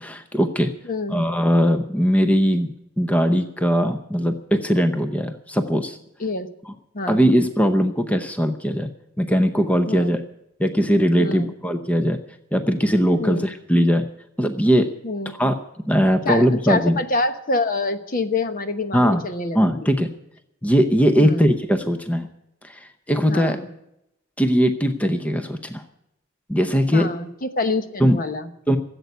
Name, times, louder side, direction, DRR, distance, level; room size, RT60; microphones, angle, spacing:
voice 1, 0.0-0.7 1.1-2.7 3.0-6.0 7.1-8.9 9.2-10.2 10.6-12.2 12.5-14.1 14.4-14.9 15.4-15.5 15.9-17.0 18.9-19.2 19.5-20.1 20.6-22.3 22.6-23.6 24.4-25.8 26.5-27.1 28.0-28.2 28.7-28.8, equal, 5° left, 7 dB, 0.8 m, -20 dB
voice 2, 0.8-1.3 6.2-6.5 6.9-7.2 9.9-10.1 11.2-11.5 13.2-13.4 15.0-15.3 16.2-19.9 21.2-21.5 23.3-23.7 26.9-28.5, left 2 dB, 45° left, 8 dB, 1.1 m, -26 dB
15.0 x 8.1 x 9.3 m, 0.82 s
head